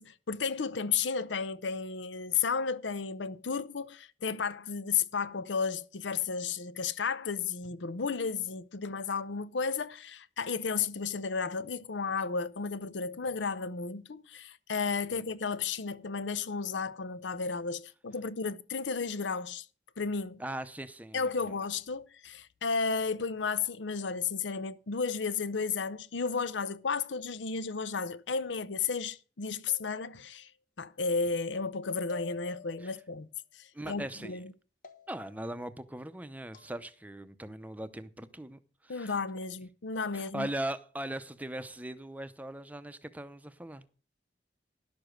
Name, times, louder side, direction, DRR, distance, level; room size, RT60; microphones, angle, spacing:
voice 1, 0.0-19.7 20.0-20.4 21.1-30.5 30.8-33.3 33.5-34.5 38.9-40.5, left 5 dB, 75° left, 0.7 m, -33 dB
voice 2, 20.4-21.6 32.8-32.9 33.7-34.4 35.1-39.1 40.1-43.9, right 1 dB, 10° right, 0.7 m, -40 dB
sound 1, 29.7-30.5 32.1-33.0 34.8-35.5 36.5-36.8, left 6 dB, 50° left, 1.3 m, -50 dB
11.5 x 6.9 x 6.4 m
head